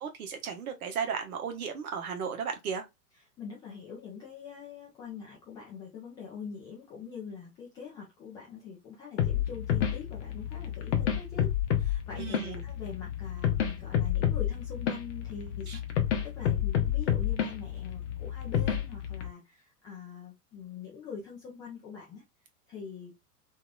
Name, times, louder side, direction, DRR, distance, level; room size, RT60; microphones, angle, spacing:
voice 1, 0.0-2.8 12.2-12.6 15.7-15.8, right 6 dB, 60° right, 1.0 m, -35 dB
voice 2, 3.4-15.8 16.2-22.2 22.7-23.1, left 6 dB, 10° left, 0.3 m, -44 dB
sound 1, 9.2-19.3, left 10 dB, 50° left, 0.8 m, -29 dB
2.9 x 2.7 x 2.3 m
figure-of-eight pair, 90°, 48 cm